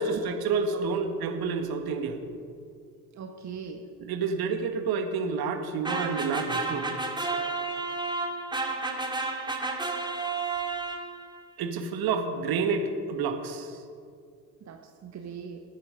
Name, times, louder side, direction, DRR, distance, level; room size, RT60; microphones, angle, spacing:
voice 1, 0.0-2.2 4.0-6.9 11.6-13.8, right 5 dB, 50° right, 6 dB, 1.8 m, -29 dB
voice 2, 0.7-1.0 3.1-3.8 7.2-7.6 12.5-12.6 14.6-15.6, right 6 dB, 35° right, 4 dB, 1.3 m, -41 dB
sound 1, 5.8-11.4, right 3 dB, 10° right, 2.2 m, -31 dB
22.5 x 9.6 x 5.2 m, 2.2 s
figure-of-eight pair, 60°, 47 cm